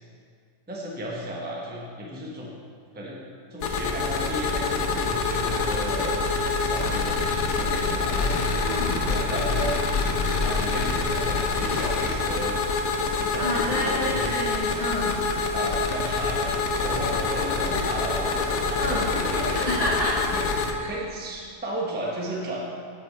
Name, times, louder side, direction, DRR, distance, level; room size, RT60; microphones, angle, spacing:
voice 1, 0.7-2.5 2.9-3.2 3.5-6.2 6.6-8.4 9.0-12.6 13.2-14.3 15.3-19.7 20.3-20.5 20.9-22.7, equal, 10° right, -3 dB, 0.8 m, -34 dB
sound 1, 3.6-20.7, left 4 dB, 80° left, 1.2 m, -26 dB
voice 2, 8.6-9.0 13.4-15.2 18.8-19.0 19.5-20.2 20.8-20.9, left 1 dB, 30° left, -7 dB, 1.2 m, -29 dB
9.0 x 7.3 x 3.2 m, 2.1 s
omnidirectional pair, 1.4 m